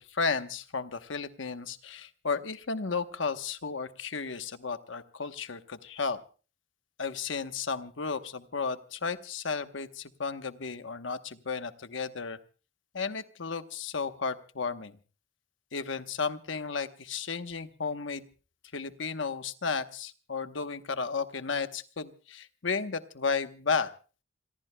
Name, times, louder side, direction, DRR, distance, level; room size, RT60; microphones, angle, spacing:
voice 1, 0.0-6.2 7.0-12.4 12.9-14.9 15.7-18.2 18.7-23.9, left 5 dB, 70° left, 10 dB, 1.0 m, -33 dB
27.0 x 22.0 x 2.2 m, 0.36 s
head